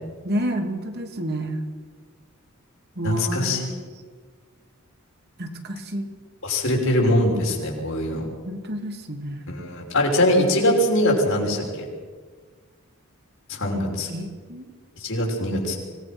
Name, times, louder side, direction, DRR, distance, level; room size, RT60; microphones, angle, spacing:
voice 1, 0.2-1.6 3.0-3.9 5.4-6.1 8.4-9.5 14.1-14.7, right 1 dB, 50° right, 4 dB, 2.5 m, -30 dB
voice 2, 3.0-3.7 6.4-8.3 9.5-11.8 13.5-14.1 15.0-15.8, left 1 dB, 65° left, -1 dB, 6.2 m, -22 dB
25.5 x 19.0 x 6.2 m, 1.5 s
head